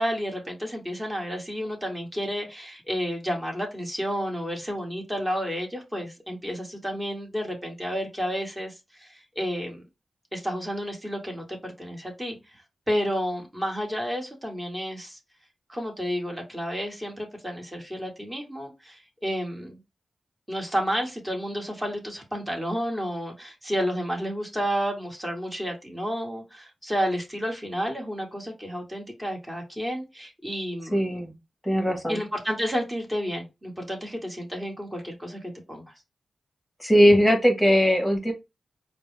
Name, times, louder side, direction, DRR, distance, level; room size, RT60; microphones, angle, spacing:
voice 1, 0.0-9.8 10.3-12.4 12.9-15.2 15.7-19.8 20.5-31.1 32.1-35.9, equal, 15° right, 0 dB, 1.6 m, -31 dB
voice 2, 30.9-31.3 31.6-32.2 36.8-38.3, equal, 10° left, 3 dB, 1.4 m, -20 dB
4.3 x 2.2 x 3.2 m, 0.24 s
cardioid pair, 60°, 0 cm